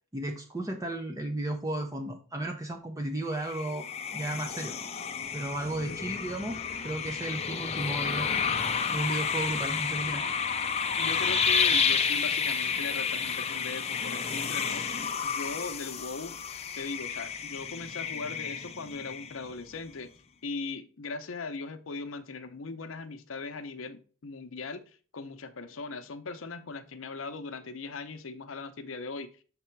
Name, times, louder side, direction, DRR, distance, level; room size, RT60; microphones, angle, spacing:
voice 1, 0.0-3.9 4.1-4.8 5.3-8.3 8.9-10.2, right 1 dB, 15° right, 4 dB, 0.6 m, -34 dB
sound 1, 3.4-19.6, left 6 dB, 30° left, 0.5 m, -31 dB
voice 2, 11.0-14.9 15.2-16.4 16.8-20.1 20.4-29.3, left 4 dB, 80° left, 9 dB, 0.7 m, -39 dB
6.8 x 3.6 x 4.4 m, 0.39 s
head